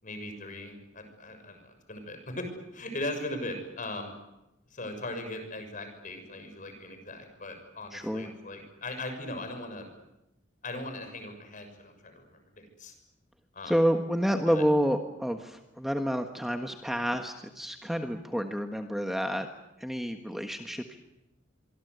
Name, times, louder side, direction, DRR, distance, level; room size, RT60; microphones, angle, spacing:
voice 1, 0.0-4.1 4.7-9.9 10.6-12.9 13.5-13.7 14.5-14.6, left 1 dB, 45° left, 7 dB, 6.4 m, -39 dB
voice 2, 7.9-8.3 13.7-19.5 19.8-21.0, equal, ahead, 5 dB, 1.4 m, -29 dB
26.5 x 24.0 x 8.2 m, 0.93 s
head